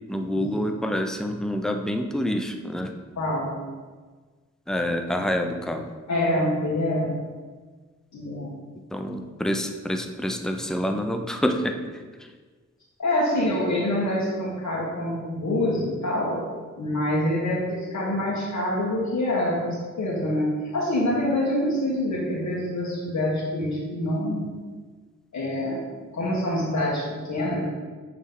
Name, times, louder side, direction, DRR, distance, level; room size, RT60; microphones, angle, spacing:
voice 1, 0.1-2.9 4.7-5.9 8.9-11.8, equal, ahead, 5 dB, 0.6 m, -27 dB
voice 2, 3.1-3.5 6.1-7.1 8.1-8.5 13.0-16.4 16.8-24.5 25.3-25.8 26.1-27.7, left 1 dB, 65° left, -7 dB, 1.5 m, -26 dB
8.0 x 3.4 x 3.8 m, 1.4 s
cardioid pair, 45°, 32 cm